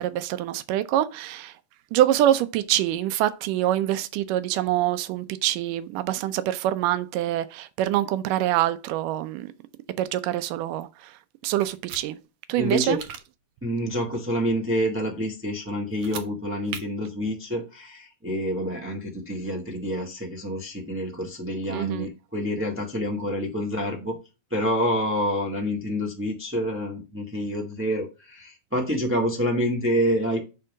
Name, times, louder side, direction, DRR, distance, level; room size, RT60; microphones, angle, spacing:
voice 1, 0.0-1.5 1.9-9.5 10.0-11.1 11.4-12.2 12.5-13.0 21.7-22.1, right 13 dB, 90° right, 2.3 m, -25 dB
sound 1, 11.6-12.0 12.8-13.2 15.9-16.3 16.7-16.8, right 7 dB, 65° right, 2.1 m, -37 dB
voice 2, 12.6-13.0 13.6-24.2 24.5-30.4, equal, 10° right, 0.7 m, -27 dB
9.0 x 3.7 x 6.2 m
omnidirectional pair, 3.7 m